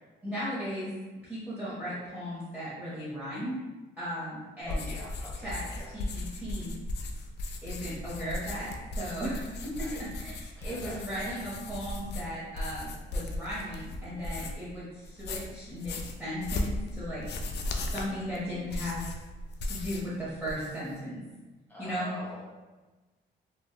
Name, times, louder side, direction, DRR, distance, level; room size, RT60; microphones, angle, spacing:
voice 1, 0.2-0.9 1.3-3.5 4.0-4.9 5.3-6.8 7.6-17.3 17.9-19.1 19.6-21.2 21.8-22.1, equal, 10° right, -10 dB, 0.8 m, -36 dB
sound 1, 4.6-14.7 15.0-20.1 20.4-20.9, left 2 dB, 60° left, 0.4 m, -37 dB
voice 2, 4.6-5.9 9.8-10.0 10.6-11.4 21.7-22.5, left 1 dB, 10° left, -6 dB, 1.2 m, -44 dB
3.4 x 2.2 x 2.3 m, 1.2 s
cardioid pair, 90°, 20 cm